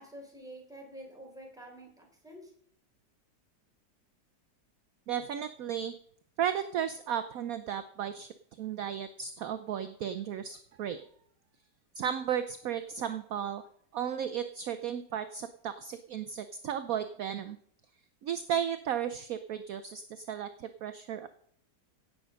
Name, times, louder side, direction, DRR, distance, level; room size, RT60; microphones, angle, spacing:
voice 1, 0.0-2.5, right 1 dB, ahead, 0 dB, 3.6 m, -48 dB
voice 2, 5.1-5.9 6.4-11.0 12.0-13.6 13.9-17.6 18.2-21.3, right 9 dB, 60° right, 11 dB, 1.0 m, -34 dB
17.0 x 6.4 x 6.3 m, 0.63 s
omnidirectional pair, 1.9 m